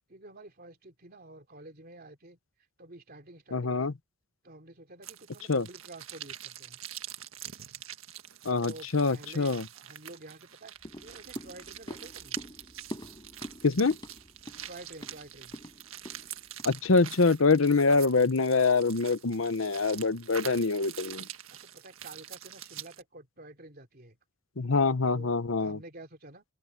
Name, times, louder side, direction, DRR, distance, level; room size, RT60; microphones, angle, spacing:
voice 1, 0.1-2.4 2.8-3.9 4.4-6.8 8.6-12.4 14.7-15.6 21.5-24.2 25.1-26.4, right 2 dB, 45° right, 3.2 m, -49 dB
voice 2, 3.5-3.9 5.5-5.7 8.4-9.6 13.6-14.0 16.6-21.2 24.6-25.8, left 4 dB, 70° left, 0.9 m, -25 dB
sound 1, 5.0-23.0, right 11 dB, 75° right, 1.6 m, -45 dB
sound 2, 10.8-17.3 17.7-17.8, equal, 20° left, 6.1 m, -45 dB
open air
head